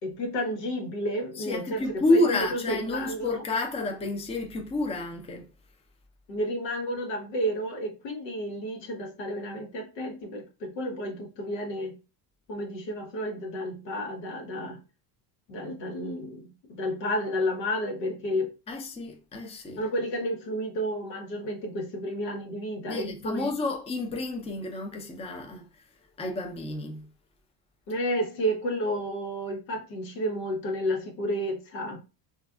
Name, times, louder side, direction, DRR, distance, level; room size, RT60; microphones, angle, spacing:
voice 1, 0.0-3.3 6.3-12.0 12.5-14.8 15.5-18.5 19.8-23.5 27.9-32.0, equal, 90° left, 1.1 m, -31 dB
voice 2, 1.4-5.5 18.7-19.8 22.9-25.7 26.2-27.1, left 2 dB, 15° left, 0.5 m, -29 dB
3.4 x 2.4 x 2.3 m
supercardioid pair, 100°, 49 cm